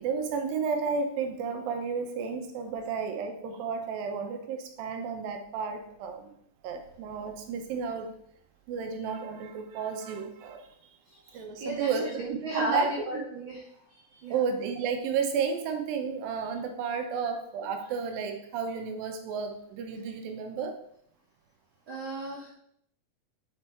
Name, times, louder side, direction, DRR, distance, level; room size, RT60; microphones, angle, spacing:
voice 1, 0.0-6.3 6.6-8.1 8.7-10.7 11.3-12.9 14.3-20.8, right 5 dB, 90° right, 4 dB, 2.7 m, -32 dB
voice 2, 11.1-14.4 21.9-22.5, right 1 dB, 65° right, -4 dB, 1.2 m, -35 dB
7.8 x 4.5 x 4.4 m, 0.69 s
omnidirectional pair, 4.0 m